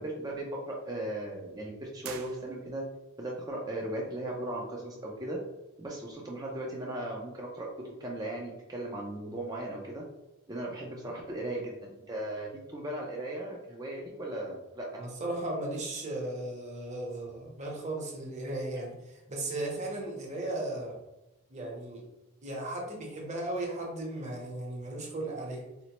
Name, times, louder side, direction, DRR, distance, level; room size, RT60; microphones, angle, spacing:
voice 1, 0.0-2.8 3.2-5.4 5.8-7.7 8.0-10.0 10.5-15.0, right 1 dB, 20° right, -2 dB, 0.4 m, -37 dB
sound 1, 2.0-3.1, right 7 dB, 80° right, 0.4 m, -46 dB
voice 2, 15.0-21.0 21.5-22.1 22.4-25.7, right 2 dB, 35° right, -1 dB, 0.8 m, -36 dB
4.1 x 2.0 x 2.9 m, 0.98 s
head